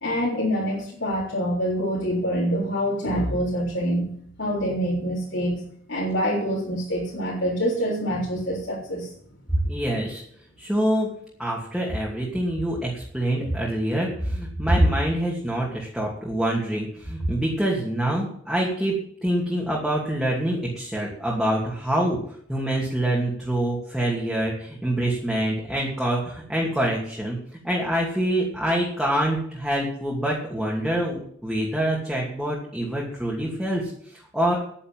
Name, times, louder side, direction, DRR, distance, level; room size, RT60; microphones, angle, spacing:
voice 1, 0.0-4.1 4.4-5.6 5.9-9.1, equal, 65° left, -7 dB, 4.1 m, -25 dB
voice 2, 9.5-10.2 10.6-11.1 11.4-22.2 22.5-27.4 27.6-34.6, right 1 dB, ahead, -4 dB, 2.7 m, -25 dB
10.0 x 9.9 x 7.7 m, 0.63 s
head